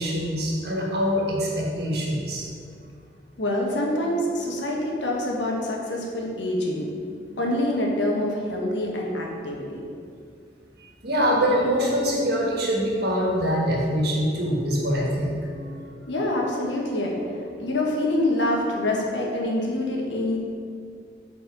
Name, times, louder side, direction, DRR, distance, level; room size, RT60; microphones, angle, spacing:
voice 1, 0.0-2.4 11.0-15.8, equal, 60° right, -3 dB, 1.6 m, -24 dB
voice 2, 3.4-9.8 16.1-20.4, left 1 dB, 75° left, -1 dB, 1.3 m, -26 dB
7.6 x 4.2 x 5.2 m, 2.3 s
head